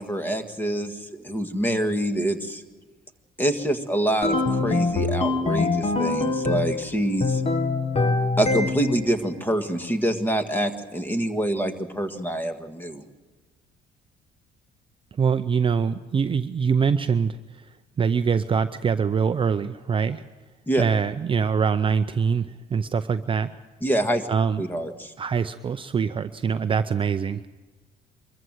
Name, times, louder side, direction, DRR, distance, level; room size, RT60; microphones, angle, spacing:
voice 1, 0.0-2.6 3.4-7.4 8.4-13.0 20.7-20.8 23.8-24.3 24.6-25.1, right 1 dB, 10° left, 7 dB, 1.7 m, -26 dB
sound 1, 4.2-6.8 7.2-9.1, left 3 dB, 35° left, 1.5 m, -24 dB
voice 2, 15.2-17.4 18.0-20.2 20.8-23.5 24.3-24.6 25.2-27.5, right 6 dB, 30° right, 10 dB, 0.6 m, -24 dB
23.5 x 14.5 x 7.7 m, 1.2 s
cardioid pair, 110°, 17 cm